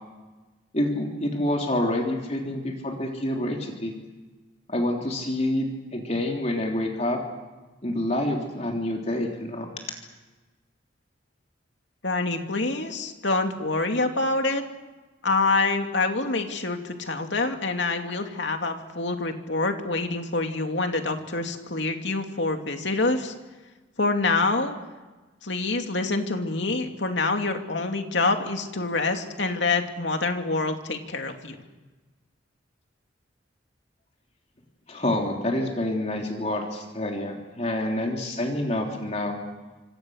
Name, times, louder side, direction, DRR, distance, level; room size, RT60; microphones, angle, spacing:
voice 1, 0.7-3.9 4.7-5.7 5.9-7.2 7.8-9.7 34.9-39.4, left 1 dB, 35° left, 1 dB, 3.4 m, -27 dB
voice 2, 12.0-14.6 15.2-23.3 24.0-24.8 25.4-31.6, left 3 dB, 65° left, 5 dB, 2.6 m, -26 dB
27.0 x 26.5 x 6.5 m, 1.2 s
head